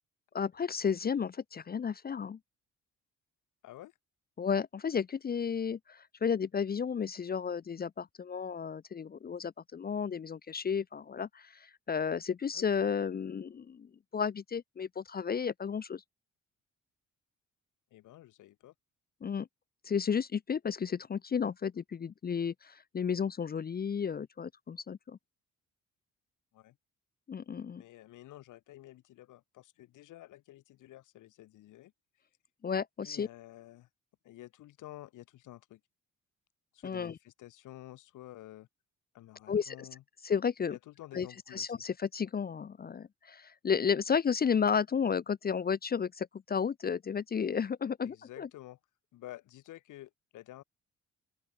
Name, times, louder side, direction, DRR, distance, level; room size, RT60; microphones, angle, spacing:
voice 1, 0.3-2.4 4.4-16.0 19.2-19.5 19.9-25.2 27.3-27.8 32.6-33.3 36.8-37.1 39.5-39.9 40.2-40.7 41.1-41.3 41.5-48.5, left 6 dB, 30° left, 0.6 m, -33 dB
voice 2, 3.6-3.9 12.5-12.9 17.9-18.7 26.5-26.8 27.8-31.9 33.0-33.9 34.2-35.8 36.7-38.7 39.1-40.0 40.7-41.7 48.0-48.8 49.1-50.6, left 15 dB, 85° left, 2.1 m, -51 dB
open air
cardioid pair, 90°, 30 cm